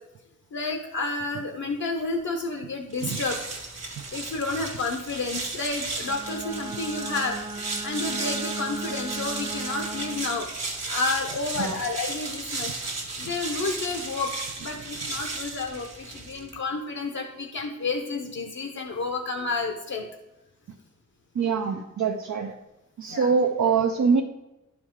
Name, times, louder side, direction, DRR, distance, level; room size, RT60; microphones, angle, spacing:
voice 1, 0.5-3.4 4.1-12.8 13.2-14.4 14.6-20.1 23.1-23.3, left 3 dB, 70° left, 4 dB, 0.7 m, -31 dB
sound 1, 2.9-16.6, right 3 dB, 60° right, 1.4 m, -35 dB
Bowed string instrument, 6.0-10.5, right 3 dB, 15° right, 0.3 m, -36 dB
voice 2, 21.3-22.5 23.0-24.2, right 5 dB, 75° right, 2 dB, 0.6 m, -24 dB
11.5 x 4.8 x 3.6 m, 0.97 s
wide cardioid pair, 130°, 30 cm